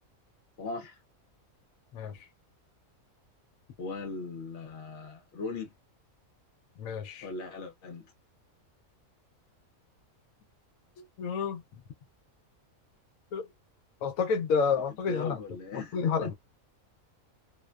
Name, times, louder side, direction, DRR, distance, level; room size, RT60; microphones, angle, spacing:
voice 1, 0.6-1.0 3.8-5.7 7.2-8.1 15.1-16.3, left 4 dB, 60° left, 0.9 m, -38 dB
voice 2, 6.8-7.3 11.2-11.6 13.3-13.5 14.0-15.4 15.9-16.3, left 5 dB, 80° left, 1.0 m, -29 dB
2.6 x 2.1 x 2.2 m
omnidirectional pair, 1.4 m